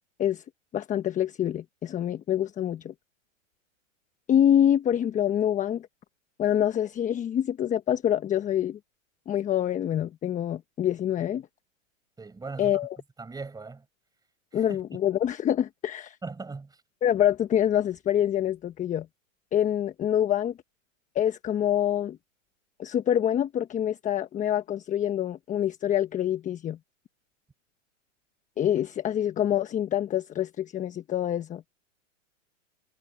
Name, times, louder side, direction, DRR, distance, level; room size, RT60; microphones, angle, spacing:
voice 1, 0.7-2.9 4.3-5.9 6.4-8.8 9.3-11.4 12.6-12.9 14.5-16.2 17.0-19.1 19.5-20.5 21.1-22.2 22.8-26.8 28.6-31.6, left 10 dB, 20° left, 1.2 m, -26 dB
voice 2, 12.2-12.8 13.2-13.8 14.5-14.8 16.2-16.8, right 4 dB, 10° right, 6.4 m, -39 dB
hypercardioid pair, 125°, 39 cm